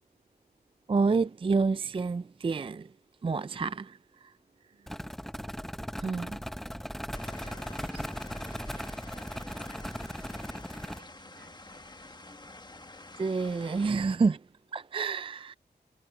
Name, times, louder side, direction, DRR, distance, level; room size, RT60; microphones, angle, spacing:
voice 1, 0.9-2.9 3.2-4.3 6.0-6.4 13.2-14.4 14.7-15.5, right 4 dB, 30° right, 0.4 m, -28 dB
voice 2, 4.7-5.2 7.1-12.3, right 5 dB, 70° right, 5.8 m, -61 dB
sound 1, 4.9-11.0, equal, ahead, 0.9 m, -38 dB
sound 2, 7.1-13.9, left 2 dB, 25° left, 1.3 m, -49 dB
cardioid pair, 60°, 18 cm